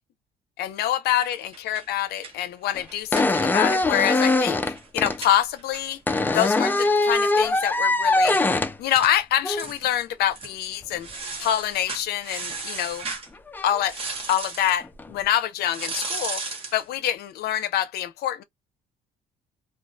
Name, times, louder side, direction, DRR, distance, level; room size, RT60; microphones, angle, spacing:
voice 1, 0.6-6.0 6.3-8.4 8.8-11.1 11.4-13.1 13.6-14.0 14.3-16.4 16.7-18.4, left 11 dB, 70° left, 0.5 m, -26 dB
sound 1, 1.2-3.8 4.1-4.2 4.5-7.6 7.9-8.0 8.2-8.5 9.0-9.1 9.6-10.0 10.3-10.6 11.0-13.3 13.9-14.8 15.7-16.8, right 3 dB, 35° right, 1.0 m, -36 dB
sound 2, 2.7-2.8 3.1-5.2 6.1-8.7 9.4-9.7 12.5-12.6 13.5-13.8 14.8-15.1, left 2 dB, 10° left, 0.3 m, -22 dB
2.3 x 2.0 x 2.6 m
cardioid pair, 110°, 17 cm